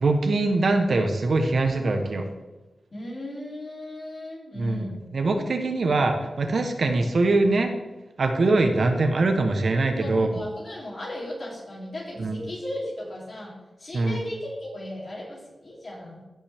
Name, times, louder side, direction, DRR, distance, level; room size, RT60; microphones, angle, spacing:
voice 1, 0.0-2.2 4.6-7.7 8.2-10.3 12.2-12.4 13.9-14.2, right 2 dB, 60° right, 5 dB, 0.9 m, -23 dB
voice 2, 2.9-5.0 10.0-13.5 13.8-16.2, left 1 dB, 40° left, -4 dB, 3.0 m, -36 dB
15.0 x 5.9 x 3.5 m, 1.1 s
wide cardioid pair, 130°, 0 cm